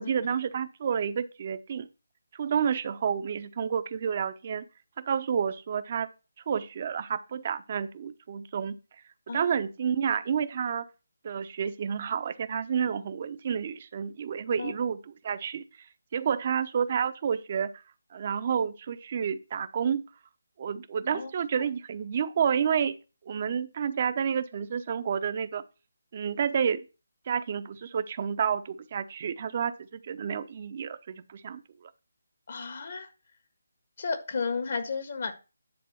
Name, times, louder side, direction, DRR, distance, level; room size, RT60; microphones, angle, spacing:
voice 1, 0.0-1.9 2.3-4.7 5.0-6.1 6.5-8.8 9.3-10.9 11.2-15.6 16.1-17.7 18.1-20.0 20.6-23.0 23.2-25.6 26.1-26.9 27.3-31.6, right 7 dB, 35° right, 0.9 m, -30 dB
voice 2, 32.5-33.1 34.0-35.3, left 4 dB, 50° left, 1.6 m, -33 dB
10.0 x 3.7 x 7.1 m
figure-of-eight pair, 160°, 0 cm